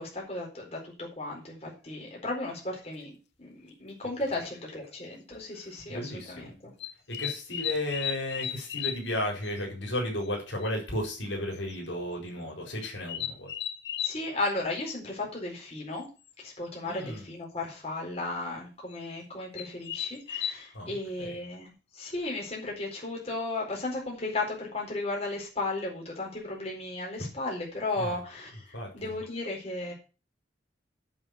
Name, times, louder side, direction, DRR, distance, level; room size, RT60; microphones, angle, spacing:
voice 1, 0.0-3.1 3.4-6.7 14.0-16.0 16.4-29.9, left 2 dB, 35° left, -2 dB, 4.4 m, -35 dB
sound 1, 2.8-2.9 4.3-4.4 5.1-5.4 6.8-9.1 9.4-9.5 9.8-9.9 10.2-10.3 10.6-10.7 11.5-11.8 12.8-14.2 16.3-16.4 16.7-17.0 18.9-19.0 19.6-20.5, left 10 dB, 65° left, 1.0 m, -35 dB
voice 2, 5.8-6.5 7.1-13.5 16.8-17.2 20.7-21.4 28.0-28.2 28.7-29.1, left 1 dB, 85° left, 0 dB, 4.5 m, -34 dB
8.9 x 6.0 x 8.0 m, 0.33 s
head